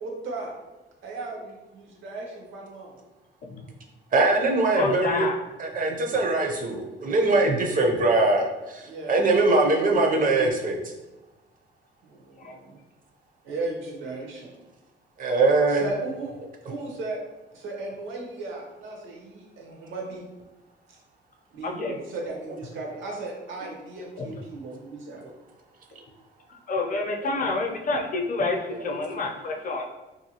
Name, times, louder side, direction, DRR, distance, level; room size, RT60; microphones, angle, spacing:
voice 1, 0.0-0.5 1.0-2.9 6.2-6.8 8.8-9.4 12.0-12.8 13.4-14.5 15.7-16.3 16.7-17.2 17.5-20.2 20.9-21.0 21.5-25.2, right 3 dB, 75° right, -1 dB, 0.8 m, -36 dB
voice 2, 4.1-5.3 5.6-10.8 15.2-15.8 21.9-22.0, right 2 dB, 45° right, 2 dB, 0.5 m, -22 dB
voice 3, 4.7-5.4 12.4-12.6 21.6-22.0 24.2-24.3 26.5-29.9, left 3 dB, 45° left, 2 dB, 0.5 m, -28 dB
2.7 x 2.7 x 2.8 m, 1.1 s
cardioid pair, 90°, 20 cm